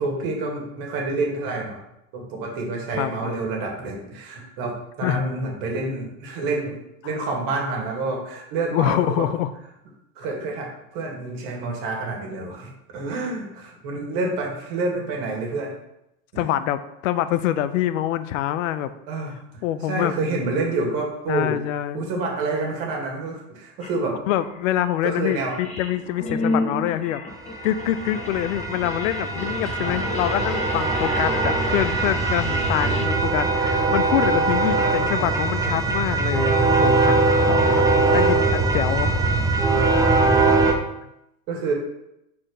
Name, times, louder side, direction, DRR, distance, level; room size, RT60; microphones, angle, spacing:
voice 1, 0.0-1.8 2.1-6.8 7.0-9.3 10.2-15.8 16.3-16.5 19.1-21.6 21.9-24.2 25.0-25.5 29.8-30.1 37.4-38.2 41.5-41.7, right 3 dB, 55° right, 0 dB, 2.0 m, -28 dB
voice 2, 3.0-3.3 5.0-5.3 8.7-9.5 16.4-18.9 19.6-20.1 21.3-22.0 24.3-27.2 27.6-37.9 38.1-39.1, left 12 dB, 70° left, 12 dB, 0.6 m, -25 dB
sound 1, 23.8-23.9 24.4-33.1, left 3 dB, 15° left, 1.1 m, -31 dB
sound 2, 27.5-40.7, right 3 dB, 10° right, 0.6 m, -21 dB
4.5 x 4.2 x 5.0 m, 0.85 s
hypercardioid pair, 110°, 40 cm